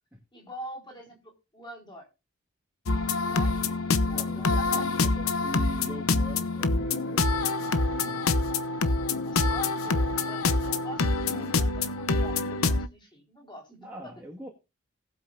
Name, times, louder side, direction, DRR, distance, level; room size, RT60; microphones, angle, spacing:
voice 1, 0.3-2.1 3.3-3.8 4.1-5.1 9.2-14.1, equal, 20° left, -1 dB, 4.6 m, -44 dB
sound 1, 2.9-12.9, left 3 dB, 85° left, 0.9 m, -26 dB
voice 2, 4.0-8.3 13.8-14.5, right 1 dB, 10° right, -2 dB, 1.8 m, -43 dB
18.5 x 8.0 x 2.6 m, 0.28 s
head